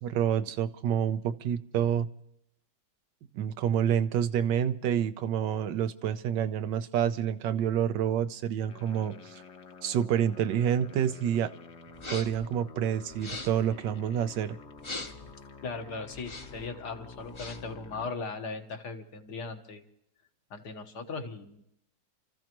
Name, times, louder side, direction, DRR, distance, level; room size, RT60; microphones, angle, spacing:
voice 1, 0.0-2.1 3.3-9.4 9.8-11.5 12.1-14.6, right 9 dB, 90° right, 11 dB, 1.5 m, -28 dB
sound 1, 8.7-18.1, left 5 dB, 45° left, 1.2 m, -49 dB
sound 2, 11.9-12.5 13.1-13.7 14.8-15.3 16.1-16.7 17.2-17.7, left 2 dB, 25° left, 0.6 m, -41 dB
voice 2, 15.6-19.8 20.5-21.6, left 4 dB, 70° left, 5 dB, 2.0 m, -38 dB
30.0 x 14.5 x 3.0 m, 0.75 s
omnidirectional pair, 1.9 m